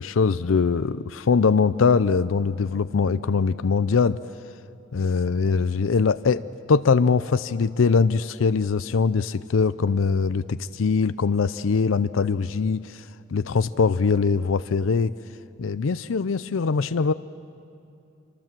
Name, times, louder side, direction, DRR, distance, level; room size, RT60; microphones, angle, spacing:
voice 1, 0.0-4.2 4.9-6.4 6.7-13.0 13.3-15.1 15.6-17.1, left 5 dB, 85° left, 14 dB, 0.5 m, -22 dB
26.5 x 25.0 x 7.5 m, 2.5 s
head